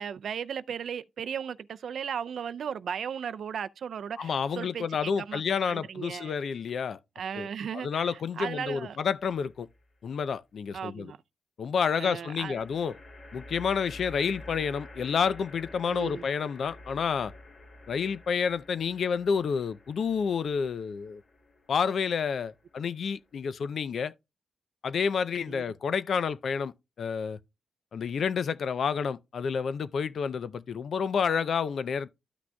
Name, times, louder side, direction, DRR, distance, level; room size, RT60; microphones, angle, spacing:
voice 1, 0.0-5.4 5.7-6.3 7.2-9.0 10.7-11.2 12.0-12.6 15.9-16.2 25.5-25.6, right 7 dB, 80° right, 0.4 m, -36 dB
voice 2, 4.2-7.0 7.4-7.5 7.7-9.7 10.0-11.1 11.6-13.0 13.3-17.3 17.9-21.2 21.7-24.1 24.8-26.7 27.0-27.4 27.9-32.1, left 6 dB, 70° left, 0.5 m, -29 dB
sound 1, 9.2-9.8 12.3-23.7, left 2 dB, 50° left, 2.1 m, -50 dB
13.0 x 6.0 x 2.2 m
cardioid pair, 80°, 0 cm